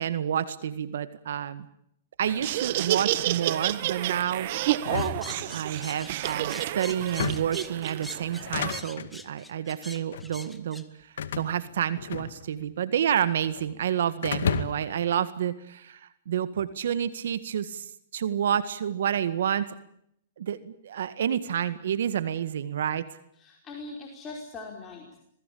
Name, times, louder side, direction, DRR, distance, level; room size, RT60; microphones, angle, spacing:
voice 1, 0.0-1.6 2.2-4.5 5.5-19.7 20.4-23.1, right 9 dB, 75° right, 14 dB, 1.8 m, -29 dB
Laughter, 2.2-8.8, right 14 dB, 50° right, 1.5 m, -30 dB
sound 1, 4.8-6.0 7.0-7.6 8.3-9.1 9.9-10.3 11.2-12.7 12.9-13.7 14.2-15.0, left 7 dB, 75° left, 2.1 m, -33 dB
sound 2, 4.9-10.8, left 1 dB, ahead, 1.8 m, -43 dB
voice 2, 23.4-25.2, left 3 dB, 20° left, 0 dB, 5.1 m, -41 dB
27.0 x 20.0 x 8.6 m, 0.71 s
hypercardioid pair, 140°, 0 cm